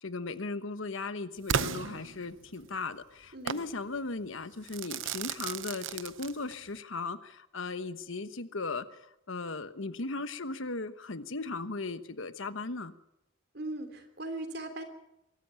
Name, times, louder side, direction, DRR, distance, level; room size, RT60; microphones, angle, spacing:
voice 1, 0.0-8.8 9.3-12.9, left 3 dB, 70° left, 12 dB, 1.2 m, -37 dB
Crackle / Fireworks, 1.5-2.6 3.5-3.7 4.7-6.7, right 7 dB, 65° right, 0.8 m, -34 dB
voice 2, 3.3-3.7 13.5-14.8, right 2 dB, 50° right, 8 dB, 3.2 m, -39 dB
23.0 x 14.0 x 8.9 m, 0.83 s
head